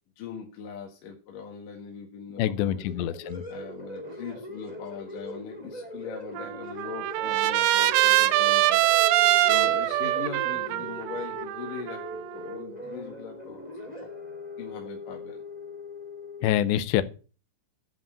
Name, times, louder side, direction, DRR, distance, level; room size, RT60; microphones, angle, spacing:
voice 1, 0.2-3.1 3.5-8.9 9.5-13.6 14.0-14.1 14.6-15.4, left 6 dB, 55° left, 2.7 m, -40 dB
voice 2, 2.4-3.4 16.4-17.0, left 12 dB, 80° left, 2.8 m, -25 dB
sound 1, 2.7-16.5, left 1 dB, 30° left, 0.7 m, -41 dB
Trumpet, 6.4-12.5, right 15 dB, 90° right, 3.2 m, -24 dB
11.0 x 5.0 x 8.4 m
omnidirectional pair, 5.5 m